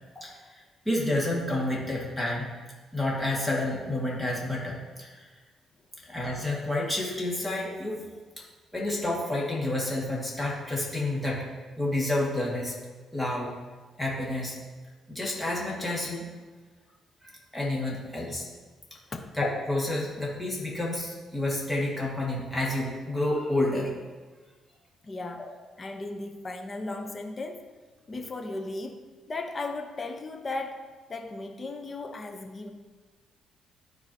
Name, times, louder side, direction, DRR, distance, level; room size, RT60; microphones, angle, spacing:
voice 1, 0.2-2.5 2.9-5.3 6.0-8.0 8.4-8.5 8.7-11.5 11.8-12.7 13.1-13.5 14.0-14.6 15.1-16.3 17.2-18.5 19.4-23.9 25.4-25.5, left 1 dB, 10° left, -4 dB, 2.1 m, -29 dB
voice 2, 25.0-25.5 25.8-27.6 28.1-30.8 31.1-32.7, left 2 dB, 35° left, 4 dB, 0.9 m, -36 dB
13.0 x 4.7 x 2.9 m, 1.4 s
cardioid pair, 90°, 0 cm